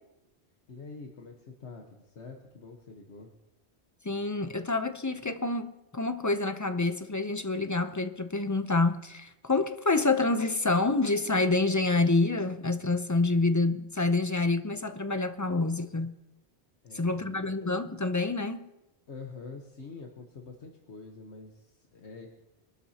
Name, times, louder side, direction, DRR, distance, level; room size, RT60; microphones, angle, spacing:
voice 1, 0.7-3.3 16.8-17.5 19.1-22.3, left 4 dB, 80° left, 1.5 m, -46 dB
voice 2, 4.0-16.2 16.9-18.7, left 3 dB, 25° left, 0.5 m, -27 dB
23.0 x 12.5 x 2.8 m
omnidirectional pair, 1.1 m